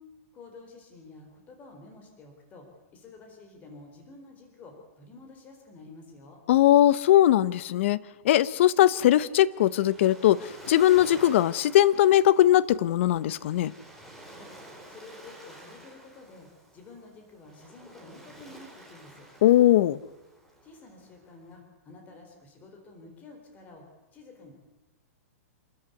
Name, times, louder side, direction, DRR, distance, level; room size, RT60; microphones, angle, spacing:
voice 1, 0.3-6.4 14.3-14.5 14.9-16.5 16.7-19.3 20.6-23.8 24.1-24.5, left 3 dB, 20° left, 4.3 m, -50 dB
voice 2, 6.5-13.7 19.4-20.0, left 13 dB, 50° left, 0.8 m, -20 dB
Waves surf, 9.1-21.5, right 1 dB, 5° left, 3.6 m, -50 dB
27.0 x 14.0 x 9.6 m
hypercardioid pair, 155°, 8 cm